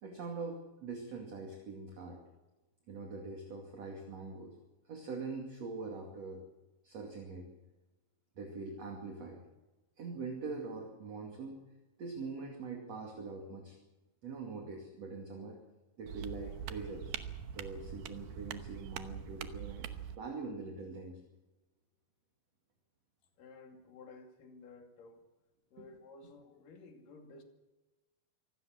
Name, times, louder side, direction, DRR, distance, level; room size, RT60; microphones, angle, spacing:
voice 1, 0.0-2.2 2.9-4.5 4.8-6.4 6.8-7.5 8.4-9.4 10.0-11.6 12.0-13.8 14.2-15.6 16.0-17.2 17.5-21.2 25.8-26.0, right 4 dB, 45° right, 2 dB, 3.2 m, -43 dB
sound 1, 16.1-20.2, right 9 dB, 80° right, 2.8 m, -43 dB
voice 2, 23.4-25.2 25.7-27.4, left 3 dB, 60° left, 4 dB, 4.0 m, -54 dB
25.0 x 18.0 x 6.4 m, 1.1 s
omnidirectional pair, 4.6 m